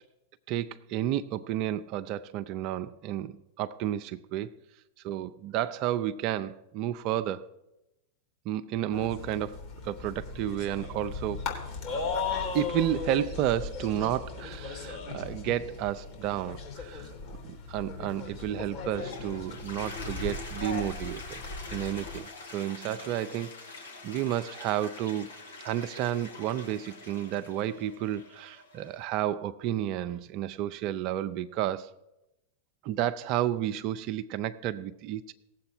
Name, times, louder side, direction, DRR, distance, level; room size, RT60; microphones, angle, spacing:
voice 1, 0.5-4.5 5.0-7.5 8.5-11.4 12.5-17.1 17.4-21.4 21.7-25.3 25.6-31.9 32.8-35.3, right 12 dB, 50° right, 10 dB, 0.4 m, -31 dB
sound 1, 8.9-22.2, left 4 dB, 45° left, 3.3 m, -37 dB
Toilet flush, 18.7-29.0, left 3 dB, 85° left, 2.2 m, -45 dB
17.5 x 7.8 x 4.4 m, 0.93 s
hypercardioid pair, 105°, 0 cm